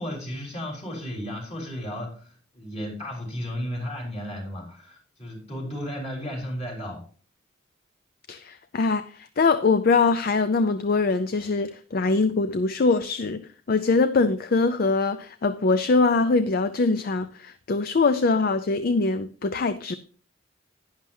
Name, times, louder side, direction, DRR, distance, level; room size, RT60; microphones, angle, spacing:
voice 1, 0.0-7.0, equal, 35° left, 4.0 m, -34 dB
voice 2, 8.3-13.4 13.7-19.9, left 3 dB, 50° left, 0.4 m, -23 dB
11.0 x 10.5 x 2.7 m
head